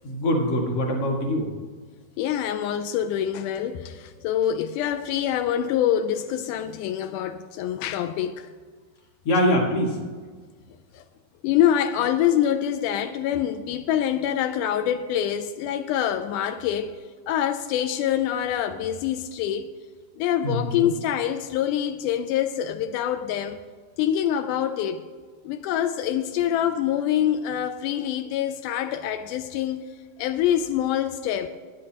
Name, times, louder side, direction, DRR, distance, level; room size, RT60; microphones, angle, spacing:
voice 1, 0.0-1.5 9.2-10.0 20.4-20.9, equal, 45° left, 2.4 m, -23 dB
voice 2, 2.2-8.5 10.9-11.0 11.4-16.9 17.3-19.7 20.2-23.6 24.0-25.0 25.5-29.9 30.2-31.5, left 10 dB, 85° left, 1.8 m, -25 dB
20.5 x 9.9 x 2.9 m
omnidirectional pair, 4.2 m